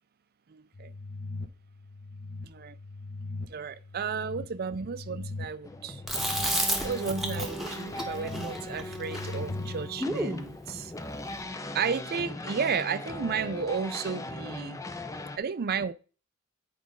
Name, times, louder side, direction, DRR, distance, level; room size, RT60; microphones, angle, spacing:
voice 1, 0.5-0.9 2.4-2.8 3.5-6.0 6.8-10.9 11.7-14.8 15.4-15.9, right 6 dB, 45° right, 0.5 m, -33 dB
sound 1, 0.7-9.9, left 3 dB, 45° left, 0.8 m, -41 dB
sound 2, 5.6-15.4, left 1 dB, 15° left, 0.5 m, -39 dB
Chewing mastication, 6.1-10.5, right 1 dB, ahead, 1.2 m, -32 dB
9.5 x 5.0 x 3.7 m
head